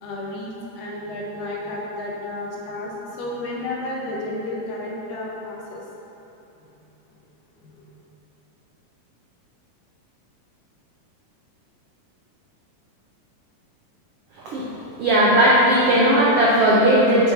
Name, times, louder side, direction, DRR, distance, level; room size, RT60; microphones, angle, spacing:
voice 1, 0.0-5.8 7.6-8.0, left 2 dB, 85° left, -3 dB, 2.5 m, -32 dB
voice 2, 15.0-17.3, right 1 dB, 90° right, -6 dB, 1.3 m, -17 dB
8.4 x 6.1 x 2.7 m, 3.0 s
omnidirectional pair, 3.7 m